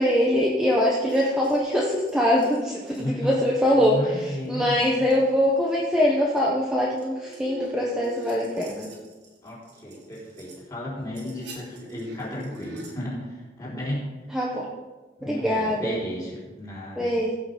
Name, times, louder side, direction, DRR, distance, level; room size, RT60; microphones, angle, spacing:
voice 1, 0.0-8.9 14.3-14.7 15.2-16.0 16.9-17.3, equal, 5° right, -4 dB, 1.2 m, -23 dB
sound 1, 1.1-4.0 4.2-4.5 4.8-5.2 5.7-5.8 6.4-6.5 6.8-10.5 10.9-12.9, equal, 90° right, 3.5 m, -43 dB
voice 2, 3.0-3.4 3.8-5.1 9.4-14.1 15.2-17.1, equal, 20° left, -6 dB, 3.8 m, -34 dB
16.0 x 6.0 x 5.2 m, 1.2 s
head